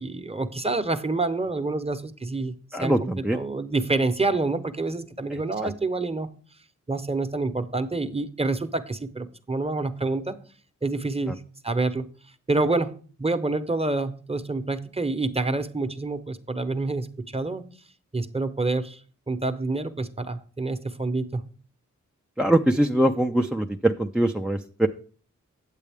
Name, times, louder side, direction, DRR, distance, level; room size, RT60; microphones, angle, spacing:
voice 1, 0.0-2.5 2.8-6.3 6.9-10.3 10.8-12.1 12.5-17.1 17.3-17.6 18.1-19.0 19.3-21.4, right 3 dB, 20° right, 9 dB, 0.8 m, -27 dB
voice 2, 2.7-3.4 5.3-5.7 11.3-11.4 22.4-24.9, right 1 dB, 5° right, 4 dB, 0.4 m, -23 dB
8.3 x 8.0 x 3.5 m, 0.42 s
cardioid pair, 55°, 31 cm